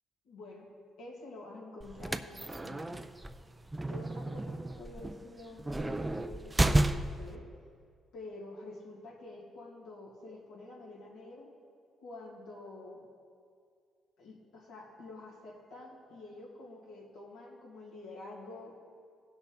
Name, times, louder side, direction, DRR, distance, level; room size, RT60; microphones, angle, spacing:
voice 1, 0.2-0.7 1.0-3.1 3.8-7.4 8.1-11.5 12.0-13.1 14.2-18.7, left 2 dB, 85° left, -4 dB, 2.4 m, -48 dB
sound 1, 1.8-7.4, right 2 dB, 15° right, 0.4 m, -32 dB
16.5 x 6.0 x 4.0 m, 2.2 s
cardioid pair, 90°, 0 cm